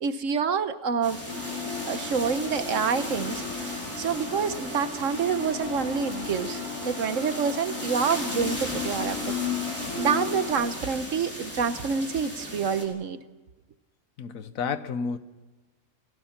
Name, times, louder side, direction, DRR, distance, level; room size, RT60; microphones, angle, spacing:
voice 1, 0.0-1.2 1.9-3.4 4.0-9.4 9.9-13.2, right 6 dB, 65° right, 11 dB, 1.3 m, -27 dB
sound 1, 1.0-12.8, equal, 10° left, 4.8 m, -37 dB
sound 2, 1.3-10.5, left 5 dB, 20° right, 8.0 m, -35 dB
voice 2, 14.2-15.2, left 5 dB, 75° left, 12 dB, 1.4 m, -31 dB
29.5 x 18.0 x 5.9 m, 1.2 s
omnidirectional pair, 1.5 m